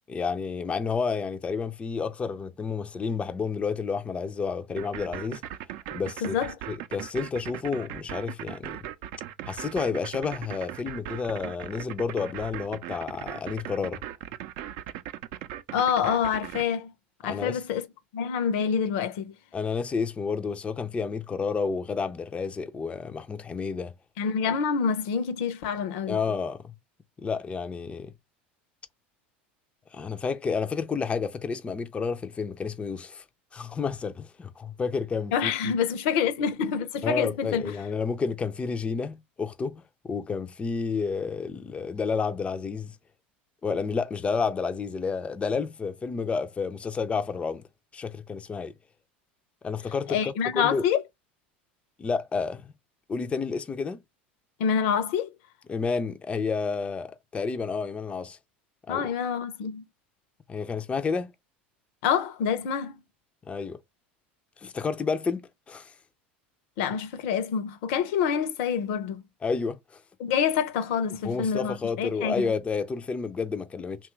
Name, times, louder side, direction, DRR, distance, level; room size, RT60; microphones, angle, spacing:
voice 1, 0.1-5.4 5.9-6.4 6.7-8.8 9.5-14.0 17.3-17.6 19.5-23.9 26.1-26.7 27.2-28.1 29.9-33.2 33.5-35.5 37.0-43.0 43.6-47.6 47.9-48.7 49.6-50.8 52.0-52.7 53.1-54.0 55.7-58.4 58.9-59.1 60.5-61.3 63.5-63.8 64.6-65.9 69.4-70.0 71.2-74.0, left 5 dB, 20° left, 0.4 m, -30 dB
sound 1, 4.8-16.6, right 12 dB, 60° right, 0.5 m, -38 dB
voice 2, 6.2-6.5 15.7-16.9 17.2-17.9 18.1-19.3 24.2-26.2 35.3-37.7 50.1-51.0 54.6-55.3 58.9-59.8 62.0-63.0 66.8-69.2 70.2-72.5, left 7 dB, 65° left, 0.6 m, -27 dB
2.9 x 2.3 x 3.1 m
hypercardioid pair, 85°, 6 cm